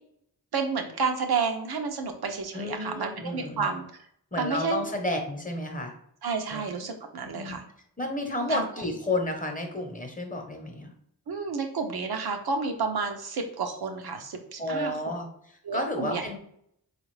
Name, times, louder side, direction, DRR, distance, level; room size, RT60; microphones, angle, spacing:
voice 1, 0.5-4.0 4.4-4.8 6.2-7.6 8.5-8.6 11.3-14.9 15.7-16.2, right 5 dB, 70° right, 4 dB, 0.7 m, -30 dB
voice 2, 2.5-3.7 4.3-5.9 6.5-6.6 7.3-7.6 8.0-10.9 14.6-16.4, left 1 dB, 20° left, 3 dB, 0.9 m, -31 dB
3.8 x 2.4 x 3.2 m, 0.69 s
cardioid pair, 45°, 39 cm